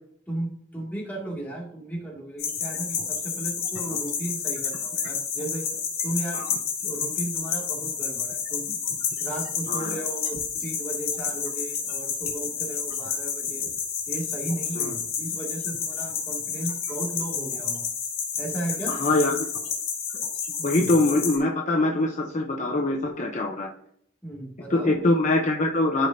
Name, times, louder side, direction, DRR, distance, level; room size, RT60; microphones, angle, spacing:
voice 1, 0.3-5.7 6.0-6.5 6.8-8.8 9.2-13.6 14.1-17.8 18.4-18.9 20.6-20.9 24.2-24.9, right 1 dB, 10° left, -3 dB, 2.2 m, -35 dB
sound 1, 2.4-21.4, left 6 dB, 75° left, 3.5 m, -30 dB
voice 2, 9.7-10.0 14.8-14.9 18.9-19.3 20.6-23.7 24.7-26.1, left 2 dB, 35° left, 1 dB, 0.7 m, -23 dB
14.0 x 5.2 x 2.7 m, 0.68 s
head